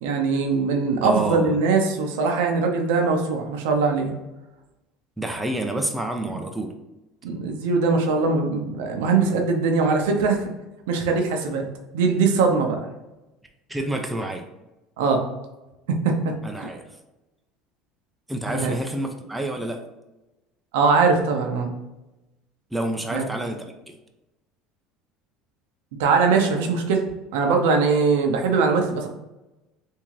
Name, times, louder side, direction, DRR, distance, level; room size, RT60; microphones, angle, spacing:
voice 1, 0.0-4.1 7.2-10.5 10.9-11.7 11.9-12.8 15.0-15.3 15.9-16.7 18.5-18.7 20.7-21.7 23.1-23.2 26.0-27.0 27.3-29.1, right 4 dB, 85° right, 3 dB, 0.7 m, -21 dB
voice 2, 1.0-1.6 5.2-6.7 13.7-14.5 16.4-16.8 18.3-19.8 22.7-23.9, right 1 dB, 5° right, 3 dB, 0.5 m, -28 dB
3.6 x 2.6 x 3.2 m, 1.0 s
supercardioid pair, 115°, 0 cm